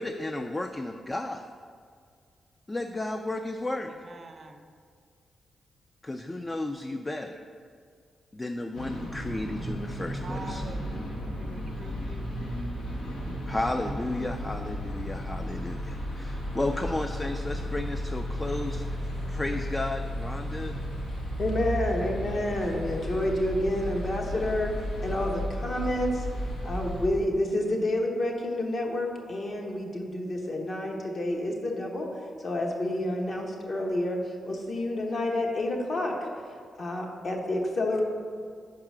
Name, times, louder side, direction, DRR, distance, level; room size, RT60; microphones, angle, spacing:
voice 1, 0.0-1.5 2.7-3.9 6.0-7.4 8.3-10.6 13.5-19.0 19.3-20.7, left 2 dB, 20° left, 5 dB, 0.3 m, -33 dB
voice 2, 3.9-4.6 10.2-11.1 11.4-12.2, right 3 dB, 45° right, 7 dB, 0.5 m, -44 dB
sound 1, 8.7-27.1, equal, 90° left, 1.0 m, -34 dB
voice 3, 21.4-26.3 26.6-36.3 36.8-38.0, left 1 dB, 50° left, 1 dB, 1.0 m, -29 dB
5.6 x 4.8 x 6.1 m, 2.1 s
cardioid pair, 100°, 0 cm